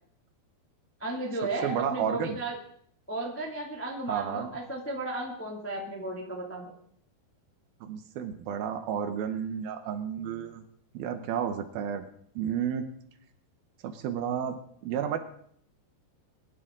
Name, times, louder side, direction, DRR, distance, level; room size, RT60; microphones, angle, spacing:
voice 1, 1.0-2.5 3.1-6.7, right 2 dB, 10° left, 0 dB, 0.6 m, -34 dB
voice 2, 1.6-2.4 4.1-4.5 7.8-10.6 10.9-12.1 12.4-12.8 13.8-14.5 14.8-15.2, right 8 dB, 75° right, 9 dB, 2.5 m, -31 dB
23.0 x 11.0 x 3.7 m, 0.62 s
omnidirectional pair, 4.8 m